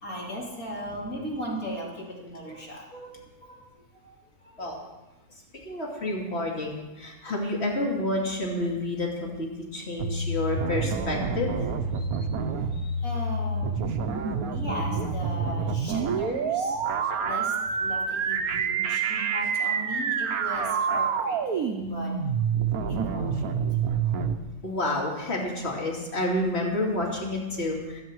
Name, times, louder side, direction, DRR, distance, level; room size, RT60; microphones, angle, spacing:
voice 1, 0.0-3.1 3.4-3.6 4.0-4.1 4.4-4.8 13.0-14.1 14.5-16.8 17.2-20.7 20.9-22.1 22.9-23.4 23.8-24.0, equal, 70° left, -4 dB, 4.0 m, -37 dB
voice 2, 5.6-11.5 12.0-12.1 12.8-12.9 24.6-28.0, left 1 dB, 45° left, -1 dB, 2.9 m, -29 dB
sound 1, 10.0-24.4, right 5 dB, 80° right, 1.4 m, -28 dB
23.0 x 8.7 x 4.8 m, 1.1 s
omnidirectional pair, 1.6 m